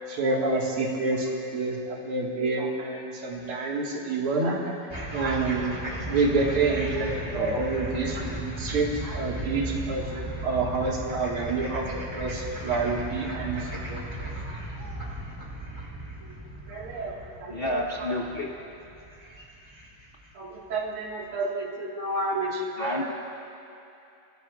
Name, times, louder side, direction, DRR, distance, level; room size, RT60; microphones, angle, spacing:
voice 1, 0.1-4.7 5.1-5.7 6.1-10.1 10.4-14.0 16.7-17.1 17.4-17.6 20.4-23.1, right 3 dB, 85° right, -2 dB, 2.6 m, -28 dB
sound 1, 4.9-20.3, right 1 dB, 10° right, 2.2 m, -36 dB
voice 2, 17.5-18.5 22.8-23.1, left 1 dB, 40° left, -2 dB, 0.8 m, -29 dB
30.0 x 15.5 x 2.4 m, 2.7 s
omnidirectional pair, 2.4 m